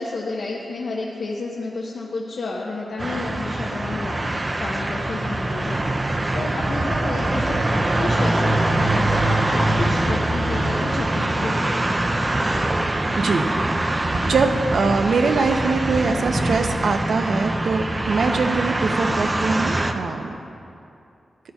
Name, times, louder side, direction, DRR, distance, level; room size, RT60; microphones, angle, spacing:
voice 1, 0.0-5.8 6.3-11.7, left 3 dB, 65° left, -4 dB, 0.9 m, -30 dB
sound 1, 3.0-19.9, right 1 dB, 20° right, 0.4 m, -23 dB
voice 2, 13.2-13.5 13.9-20.4, right 4 dB, 65° right, 6 dB, 0.6 m, -23 dB
14.0 x 11.0 x 2.3 m, 2.7 s
wide cardioid pair, 170°, 0 cm